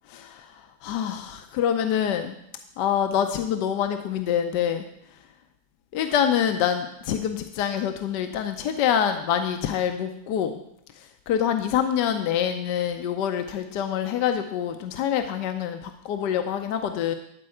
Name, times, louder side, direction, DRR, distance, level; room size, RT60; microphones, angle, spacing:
voice 1, 0.1-2.3 2.8-4.8 5.9-10.6 11.0-17.1, left 9 dB, 80° left, 7 dB, 1.3 m, -26 dB
12.0 x 4.6 x 7.6 m, 0.77 s
omnidirectional pair, 1.8 m